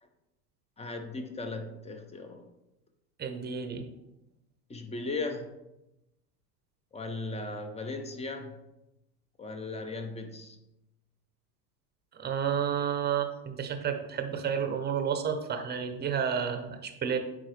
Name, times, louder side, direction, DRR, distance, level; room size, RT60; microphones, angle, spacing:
voice 1, 0.8-2.4 4.7-5.6 6.9-8.6 9.4-10.6, left 3 dB, 15° left, 6 dB, 0.6 m, -37 dB
voice 2, 3.2-3.8 12.2-17.2, right 7 dB, 20° right, 6 dB, 0.7 m, -31 dB
8.8 x 3.7 x 3.3 m, 0.93 s
hypercardioid pair, 105°, 50 cm